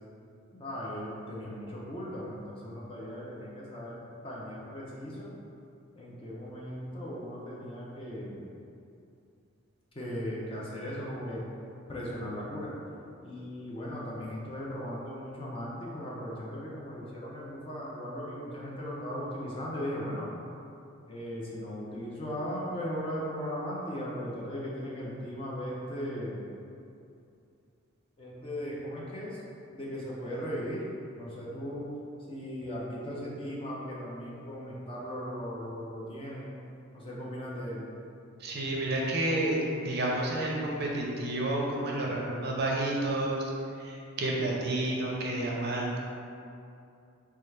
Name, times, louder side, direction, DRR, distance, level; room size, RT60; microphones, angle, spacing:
voice 1, 0.6-5.3 6.0-8.4 9.9-11.4 11.9-12.7 13.2-20.3 21.1-26.4 28.2-29.4 29.7-30.8 31.1-31.9 32.3-36.5 36.9-37.9, equal, 25° left, -5 dB, 0.5 m, -37 dB
voice 2, 38.4-43.4 43.8-46.0, right 1 dB, 50° right, -2 dB, 0.5 m, -30 dB
4.4 x 2.3 x 3.2 m, 2.6 s
head